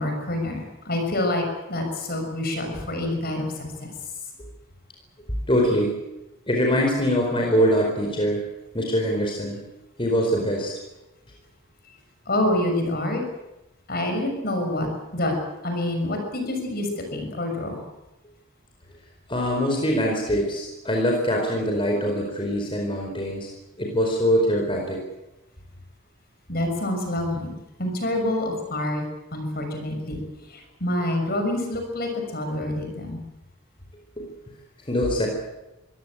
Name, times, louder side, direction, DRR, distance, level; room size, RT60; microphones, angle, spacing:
voice 1, 0.0-1.4 1.7-3.5 12.3-13.2 13.9-14.9 15.1-15.3 15.6-17.8 26.5-27.5 27.8-29.0 29.3-30.2 30.5-33.2, left 1 dB, 50° left, 4 dB, 6.5 m, -27 dB
voice 2, 5.5-5.9 6.5-8.4 8.7-9.6 10.0-10.7 14.8-14.9 19.3-23.5 23.8-25.0 34.2-34.3 34.8-35.3, equal, 25° left, 0 dB, 4.8 m, -23 dB
24.5 x 17.0 x 9.0 m, 0.96 s
head